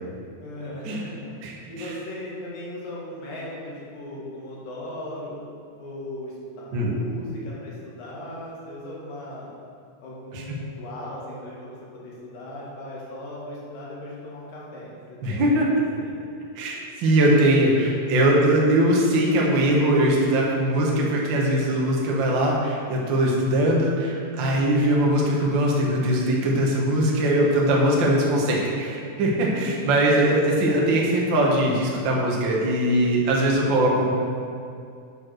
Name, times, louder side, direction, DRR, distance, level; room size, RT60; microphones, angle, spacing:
voice 1, 0.4-1.3 1.7-5.4 5.8-9.5 10.0-16.2 27.3-27.8 29.5-30.2, left 1 dB, 85° left, -6 dB, 3.7 m, -37 dB
voice 2, 15.2-15.7 16.5-34.1, right 1 dB, 55° right, -3 dB, 1.4 m, -21 dB
9.4 x 4.7 x 6.2 m, 2.4 s
omnidirectional pair, 3.9 m